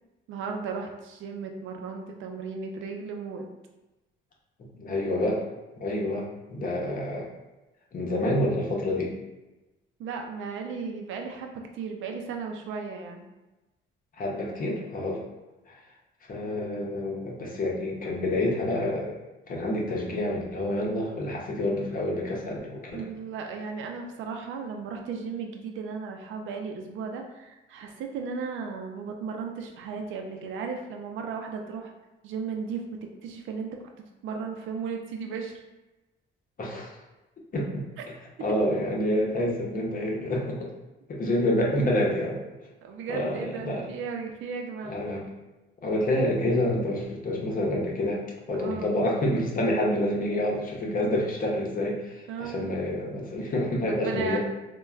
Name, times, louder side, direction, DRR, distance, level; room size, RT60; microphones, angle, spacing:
voice 1, 0.3-3.5 10.0-13.3 22.9-31.9 32.2-33.8 34.2-35.5 42.8-45.0 48.5-49.0 52.3-52.6 53.9-54.4, right 5 dB, 80° right, 3 dB, 0.4 m, -35 dB
voice 2, 4.8-5.4 5.8-7.3 7.9-9.1 14.2-15.2 15.7-15.8 16.3-19.2 19.5-23.0 36.6-37.0 37.5-37.8 38.4-40.7 41.1-42.4 43.1-43.9 44.8-45.3 45.8-48.2 48.5-54.4, left 1 dB, 45° left, -2 dB, 0.7 m, -28 dB
3.1 x 2.2 x 2.3 m, 1.1 s
cardioid pair, 90°, 20 cm